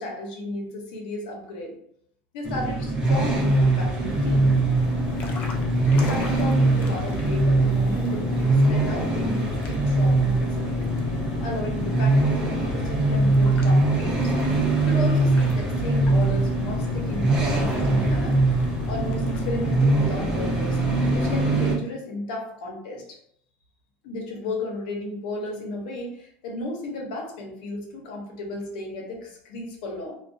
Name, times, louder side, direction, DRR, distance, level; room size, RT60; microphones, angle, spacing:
voice 1, 0.0-1.8 2.3-4.6 5.8-10.9 11.4-14.3 14.8-18.4 18.9-20.8 21.1-23.0 24.0-30.1, left 2 dB, 80° left, 1 dB, 0.7 m, -34 dB
sound 1, 2.4-21.7, right 2 dB, 20° right, 0.6 m, -22 dB
sound 2, 4.1-21.4, left 4 dB, 40° left, 0.4 m, -35 dB
2.2 x 2.2 x 2.5 m, 0.68 s
cardioid pair, 155°, 4 cm